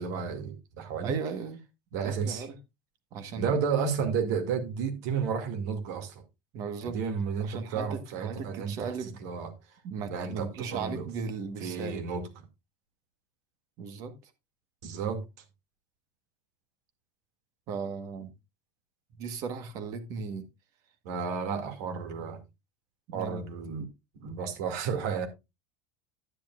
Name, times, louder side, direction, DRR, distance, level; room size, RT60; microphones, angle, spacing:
voice 1, 0.0-1.1 1.9-2.5 3.3-6.2 6.8-8.9 9.2-9.5 10.1-11.1 11.6-12.3 14.8-15.2 21.0-22.4 23.1-23.9 24.1-25.3, right 6 dB, 65° right, 2.2 m, -32 dB
voice 2, 1.0-1.6 2.0-2.5 3.1-3.6 6.5-7.0 7.4-9.2 9.8-12.1 13.8-14.1 17.7-18.3 19.2-20.5 23.1-23.4, right 5 dB, 35° right, 1.3 m, -36 dB
10.0 x 10.0 x 2.4 m
supercardioid pair, 175°, 10 cm